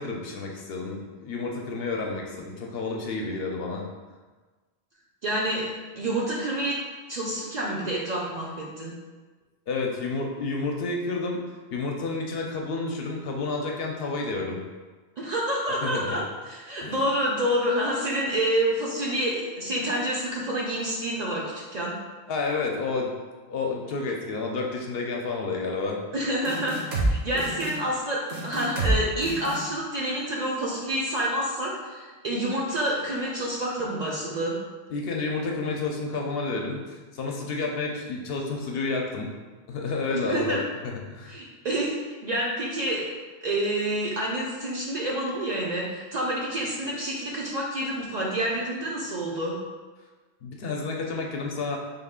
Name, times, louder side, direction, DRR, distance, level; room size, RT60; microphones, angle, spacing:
voice 1, 0.0-3.8 9.7-11.4 11.7-14.6 15.8-16.2 16.8-17.0 22.3-23.1 23.5-26.0 27.3-27.4 34.9-39.3 39.7-41.4 50.4-51.8, left 3 dB, 65° left, 0 dB, 0.7 m, -30 dB
voice 2, 5.2-5.7 6.0-6.8 7.1-8.9 15.2-21.4 21.7-22.0 26.1-34.6 40.1-40.6 41.3-43.0 43.4-49.6, right 1 dB, 50° right, -4 dB, 0.5 m, -28 dB
sound 1, 26.5-27.1 27.4-27.7 28.3-29.0 29.2-29.6, right 2 dB, 75° right, 1.1 m, -26 dB
3.6 x 2.3 x 3.6 m, 1.3 s
omnidirectional pair, 1.1 m